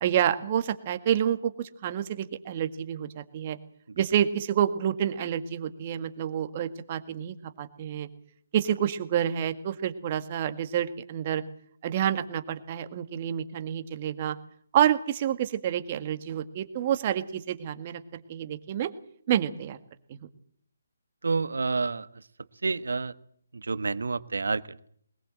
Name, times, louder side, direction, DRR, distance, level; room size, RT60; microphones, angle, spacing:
voice 1, 0.0-3.6 4.0-8.1 8.5-11.4 11.8-14.4 14.7-18.0 18.3-18.9 19.3-19.8 20.1-20.3, right 10 dB, 35° right, 9 dB, 1.9 m, -28 dB
voice 2, 21.2-22.1 22.6-23.1 23.5-24.9, right 4 dB, 75° right, 14 dB, 1.3 m, -29 dB
21.5 x 20.5 x 7.8 m, 0.67 s
figure-of-eight pair, 150°, 0 cm